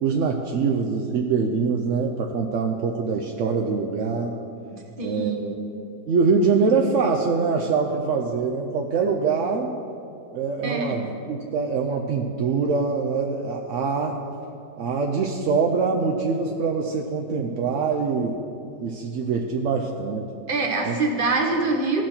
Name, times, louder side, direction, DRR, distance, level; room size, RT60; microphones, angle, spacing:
voice 1, 0.0-4.3 5.0-5.5 6.1-9.8 10.3-14.2 14.8-18.4 18.8-20.3 20.9-21.0, right 5 dB, 65° right, 1 dB, 0.7 m, -24 dB
voice 2, 4.7-5.4 10.6-11.0 20.5-22.0, right 3 dB, 35° right, 2 dB, 1.1 m, -25 dB
16.0 x 6.2 x 4.4 m, 2.7 s
omnidirectional pair, 1.9 m